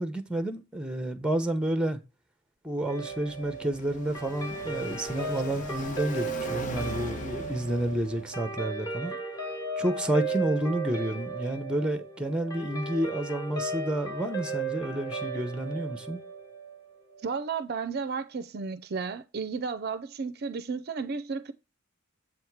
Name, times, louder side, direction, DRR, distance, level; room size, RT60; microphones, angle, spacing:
voice 1, 0.0-2.0 2.6-9.1 9.8-16.2, right 1 dB, 5° right, 0.7 m, -30 dB
Guitar, 2.9-17.4, right 3 dB, 15° left, 1.1 m, -36 dB
Car passing by, 3.0-8.5, left 2 dB, 35° left, 0.7 m, -40 dB
voice 2, 17.2-21.5, right 5 dB, 45° right, 0.5 m, -33 dB
7.8 x 3.5 x 4.6 m
head